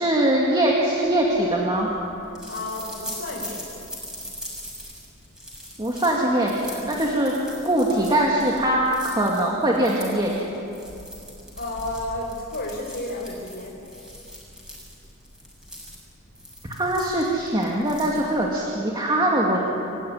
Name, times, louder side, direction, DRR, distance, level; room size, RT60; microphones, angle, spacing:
voice 1, 0.0-1.9 5.8-7.3 7.6-10.3 16.8-19.6, right 1 dB, 20° right, -2 dB, 2.3 m, -22 dB
sound 1, 1.1-18.6, equal, 5° right, 6.5 m, -41 dB
voice 2, 2.5-3.6 11.5-13.7, left 2 dB, 55° left, -5 dB, 4.8 m, -32 dB
28.5 x 15.5 x 9.7 m, 2.9 s
head